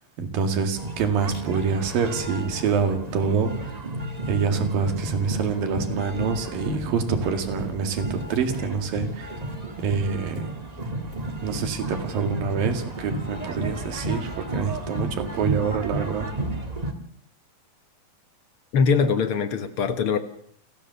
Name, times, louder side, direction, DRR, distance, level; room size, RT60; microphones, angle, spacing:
voice 1, 0.2-3.5 4.3-9.3 9.8-10.5 11.4-16.3, right 6 dB, 80° right, 6 dB, 3.9 m, -26 dB
sound 1, 0.8-16.9, right 1 dB, 30° right, 0.7 m, -32 dB
voice 2, 18.7-20.2, left 5 dB, 60° left, 10 dB, 1.5 m, -22 dB
29.5 x 13.5 x 7.0 m, 0.66 s
omnidirectional pair, 4.0 m